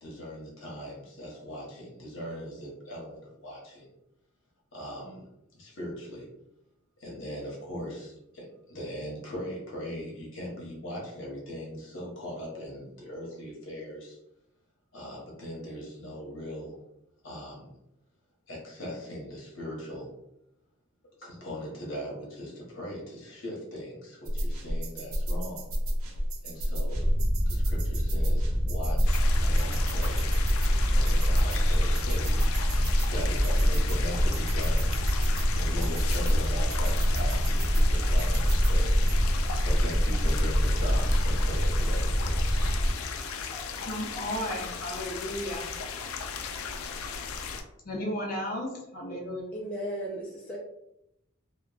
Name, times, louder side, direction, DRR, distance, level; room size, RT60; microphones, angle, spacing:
voice 1, 0.0-3.9 4.7-5.3 5.5-6.3 7.0-14.2 14.9-16.8 17.2-17.7 18.5-20.1 21.2-25.7 26.4-27.1 27.5-30.3 30.9-32.4 33.0-34.9 35.5-38.9 39.2-42.7, equal, 60° left, -3 dB, 1.0 m, -40 dB
sound 1, 24.3-39.1, equal, 85° right, 0.5 m, -31 dB
sound 2, 26.9-42.9, equal, 40° right, 0.6 m, -25 dB
sound 3, 29.1-47.6, left 4 dB, 90° left, 0.3 m, -36 dB
voice 2, 43.4-45.7 47.8-49.5, equal, 45° left, -2 dB, 0.6 m, -34 dB
voice 3, 49.5-50.6, right 1 dB, 5° left, -4 dB, 0.3 m, -35 dB
2.9 x 2.2 x 2.4 m, 0.83 s
head